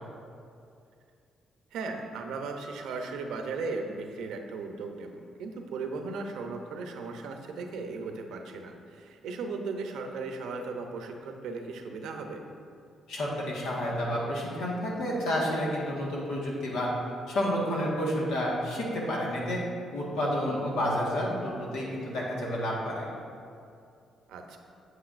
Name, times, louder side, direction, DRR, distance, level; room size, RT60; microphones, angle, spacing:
voice 1, 1.7-12.4 20.5-20.8 24.3-24.6, right 4 dB, 85° right, 4 dB, 0.7 m, -37 dB
voice 2, 13.1-16.9 17.3-19.6 19.9-23.1, equal, 90° left, -4 dB, 1.5 m, -30 dB
8.1 x 7.9 x 2.5 m, 2.4 s
cardioid pair, 90°, 0 cm